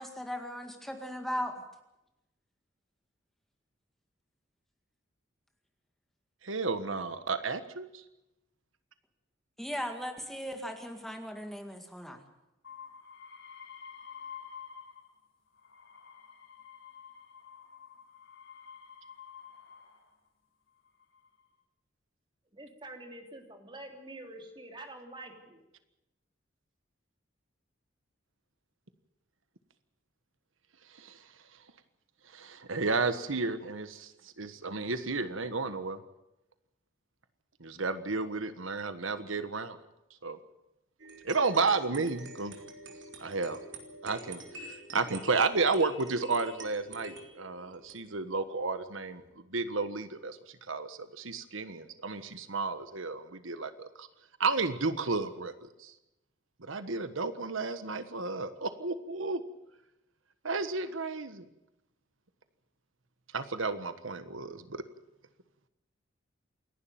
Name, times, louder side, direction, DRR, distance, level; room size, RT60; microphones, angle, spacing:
voice 1, 0.0-1.6 9.6-12.2, equal, ahead, 4 dB, 2.0 m, -37 dB
voice 2, 6.4-8.0 30.9-31.2 32.3-34.1 34.4-36.0 37.6-39.8 40.2-40.4 41.2-42.5 43.2-43.6 44.0-49.2 49.5-54.1 54.4-55.9 56.6-59.4 60.4-61.4 63.3-64.8, right 4 dB, 90° right, 11 dB, 1.4 m, -32 dB
sound 1, 12.6-15.2 15.5-20.1 20.8-21.4, left 7 dB, 80° left, 7.7 m, -49 dB
voice 3, 22.5-25.6, right 2 dB, 25° right, 4 dB, 3.2 m, -46 dB
sound 2, 41.0-49.3, right 2 dB, 65° right, 3.5 m, -48 dB
28.0 x 11.5 x 9.2 m, 0.91 s
head